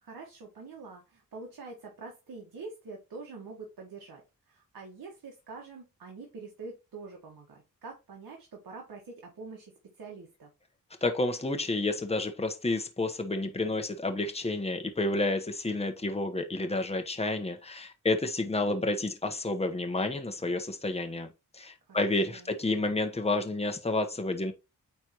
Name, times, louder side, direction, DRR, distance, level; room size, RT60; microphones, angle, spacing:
voice 1, 0.0-4.2 4.5-10.5 21.9-22.6, right 4 dB, 80° right, 1.6 m, -45 dB
voice 2, 11.0-21.3 21.5-24.5, left 2 dB, 15° left, 1.1 m, -30 dB
9.2 x 3.4 x 3.0 m
cardioid pair, 70°, 35 cm